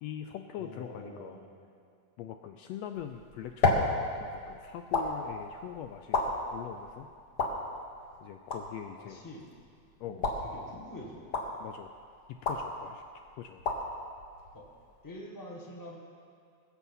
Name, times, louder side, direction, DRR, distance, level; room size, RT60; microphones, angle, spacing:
voice 1, 0.0-1.4 2.2-3.9 4.2-7.1 8.2-9.2 10.0-10.3 11.6-11.9 12.3-13.0 13.4-13.6, left 10 dB, 80° left, 6 dB, 1.6 m, -42 dB
voice 2, 0.6-1.5 4.9-5.1 9.0-9.5 10.1-11.2 14.5-14.6 15.0-16.0, left 1 dB, 10° left, -1 dB, 0.9 m, -46 dB
sound 1, 2.9-15.1, left 3 dB, 50° left, 1.3 m, -35 dB
21.0 x 7.2 x 5.5 m, 2.3 s
omnidirectional pair, 3.3 m